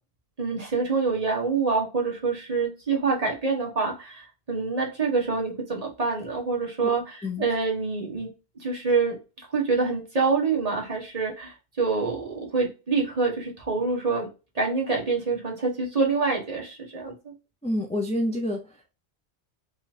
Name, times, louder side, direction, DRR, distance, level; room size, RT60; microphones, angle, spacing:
voice 1, 0.4-7.0 7.4-8.3 8.6-14.3 14.5-17.3, right 4 dB, 35° right, -1 dB, 1.3 m, -26 dB
voice 2, 17.6-18.9, left 1 dB, 10° left, 2 dB, 0.4 m, -28 dB
3.8 x 3.0 x 2.7 m, 0.30 s
omnidirectional pair, 1.1 m